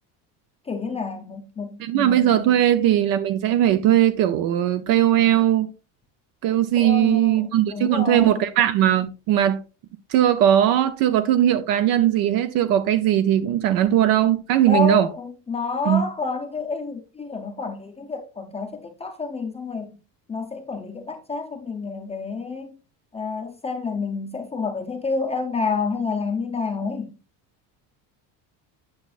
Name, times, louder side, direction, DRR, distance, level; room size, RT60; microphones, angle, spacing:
voice 1, 0.7-2.6 6.8-8.4 14.7-19.9 20.3-22.7 23.1-27.1, left 4 dB, 15° left, 0.6 m, -29 dB
voice 2, 1.8-5.7 6.4-9.6 10.1-15.1 15.9-16.0, right 11 dB, 55° right, 0.7 m, -19 dB
8.7 x 6.0 x 2.4 m
cardioid pair, 155°, 40 cm